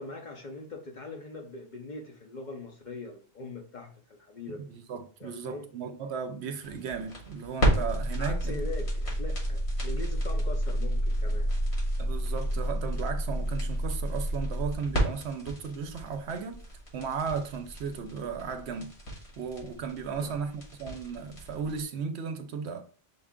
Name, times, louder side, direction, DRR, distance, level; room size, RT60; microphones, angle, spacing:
voice 1, 0.0-4.6 5.2-5.7 8.2-11.5 20.2-20.4, left 3 dB, 50° left, 0.7 m, -41 dB
voice 2, 4.7-8.6 12.0-16.7 16.9-18.9 19.4-22.8, right 6 dB, 70° right, 0.9 m, -35 dB
sound 1, 6.6-21.8, right 1 dB, 65° left, 1.9 m, -30 dB
5.5 x 2.4 x 3.6 m
omnidirectional pair, 1.2 m